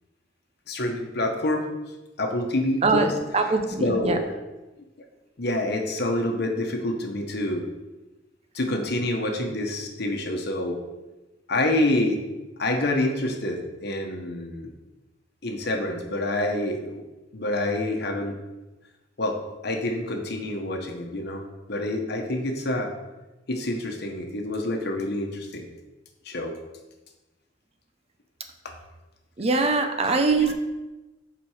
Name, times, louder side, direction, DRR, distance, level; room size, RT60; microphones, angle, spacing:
voice 1, 0.7-1.7 2.2-3.1 3.8-4.2 5.4-7.6 8.5-10.8 11.5-12.2 12.6-14.7 15.4-17.0 17.3-18.3 19.2-22.9 23.5-25.7 26.3-26.5 30.0-30.1 30.4-30.5, left 1 dB, 60° left, 3 dB, 1.1 m, -27 dB
voice 2, 2.8-4.2 29.4-30.5, right 3 dB, 35° right, 6 dB, 0.7 m, -22 dB
7.3 x 5.1 x 5.0 m, 1.1 s
head